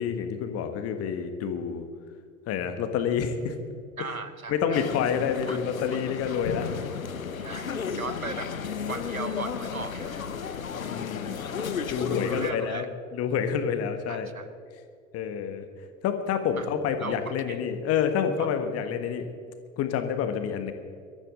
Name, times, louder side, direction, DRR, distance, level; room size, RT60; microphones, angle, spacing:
voice 1, 0.0-1.8 2.5-3.5 4.5-6.7 10.7-11.3 11.9-12.8 13.1-14.3 15.1-15.7 16.0-19.3 19.8-20.7, left 7 dB, 35° left, 7 dB, 1.6 m, -28 dB
voice 2, 4.0-4.8 5.5-5.6 6.0-6.1 7.4-8.5 8.9-10.3 12.1-12.9 14.1-14.5 16.6-16.7 17.0-17.6 18.4-18.5, right 4 dB, 90° right, 13 dB, 0.8 m, -38 dB
sound 1, 4.7-12.5, left 6 dB, 80° left, 0.9 m, -33 dB
23.0 x 13.5 x 3.8 m, 2.2 s
figure-of-eight pair, 80°, 41 cm